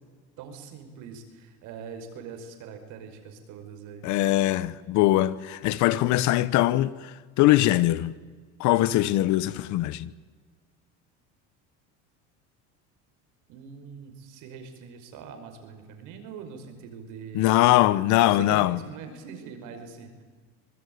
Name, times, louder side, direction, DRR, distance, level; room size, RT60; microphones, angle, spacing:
voice 1, 0.4-4.1 13.5-17.5 18.1-20.2, right 6 dB, 60° right, 5.5 m, -42 dB
voice 2, 4.0-8.1 8.6-10.1 17.3-18.8, left 15 dB, 55° left, 1.1 m, -22 dB
24.5 x 20.5 x 9.5 m
supercardioid pair, 130°, 34 cm